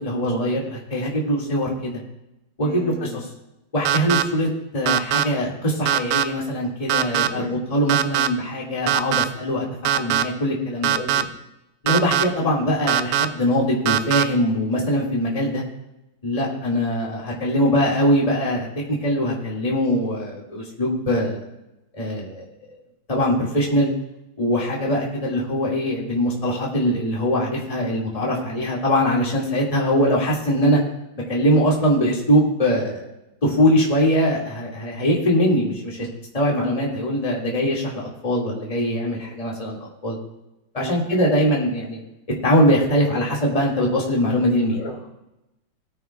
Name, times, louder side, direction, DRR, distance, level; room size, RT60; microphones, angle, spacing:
voice 1, 0.0-2.0 2.6-3.3 3.7-4.5 4.7-10.9 11.8-15.6 16.2-21.4 21.9-22.4 23.1-23.9 24.4-30.8 31.3-33.1 33.4-36.1 36.3-40.2 40.7-42.0 42.4-44.8, equal, 20° left, -4 dB, 2.2 m, -22 dB
voice 2, 2.6-3.3 7.3-7.6 10.9-11.3 12.4-12.7 16.4-16.6 24.8-25.0 25.2-25.4 34.9-35.1 39.2-39.3 40.8-40.9 44.7-45.2, equal, 70° left, -1 dB, 2.9 m, -36 dB
sound 1, 3.8-4.2 4.9-5.2 5.9-6.2 6.9-7.3 7.9-8.3 8.9-9.2 9.8-10.2 10.8-11.2 11.9-12.2 12.9-13.3 13.9-14.2, right 10 dB, 75° right, 1.0 m, -20 dB
19.0 x 9.2 x 2.4 m, 0.92 s
omnidirectional pair, 2.1 m